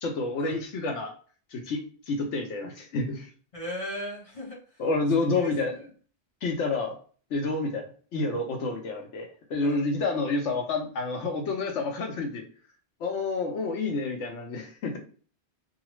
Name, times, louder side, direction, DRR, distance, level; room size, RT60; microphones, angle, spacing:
voice 1, 0.0-1.1 1.5-3.3 4.8-5.8 6.4-7.0 7.3-7.8 8.1-12.4 13.0-15.0, left 3 dB, 85° left, 3 dB, 1.1 m, -29 dB
voice 2, 3.5-4.8 5.3-5.5 9.6-9.8, equal, 30° left, -3 dB, 0.9 m, -37 dB
2.5 x 2.4 x 3.0 m, 0.42 s
omnidirectional pair, 1.2 m